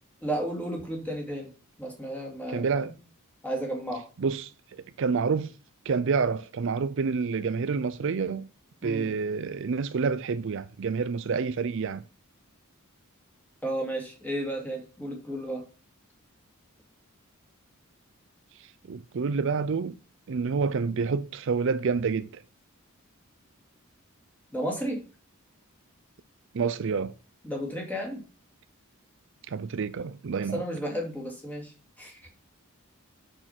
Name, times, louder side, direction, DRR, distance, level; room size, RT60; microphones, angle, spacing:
voice 1, 0.2-1.5 1.8-2.9 3.4-4.0 8.8-9.1 13.6-15.6 24.5-25.0 27.4-28.2 30.5-32.3, right 1 dB, 5° left, 2.7 m, -33 dB
voice 2, 2.5-2.9 4.2-4.5 4.8-5.5 5.9-8.5 8.8-12.0 18.9-20.0 20.3-22.4 26.5-27.1 29.5-30.6, right 5 dB, 55° right, 0.4 m, -28 dB
6.6 x 6.5 x 5.8 m
head